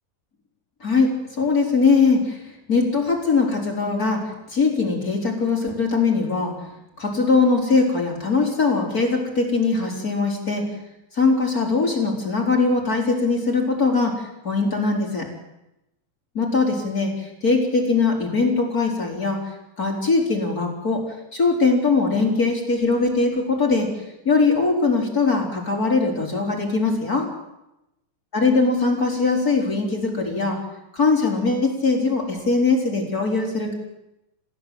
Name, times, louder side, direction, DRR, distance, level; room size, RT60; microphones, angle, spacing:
voice 1, 0.8-2.4 2.7-6.5 7.0-10.7 11.1-15.3 16.3-19.5 19.8-21.0 21.3-23.9 24.2-27.3 28.3-30.6 30.9-33.7, left 4 dB, 25° left, 0 dB, 4.4 m, -21 dB
29.5 x 15.5 x 7.7 m, 0.91 s
omnidirectional pair, 3.9 m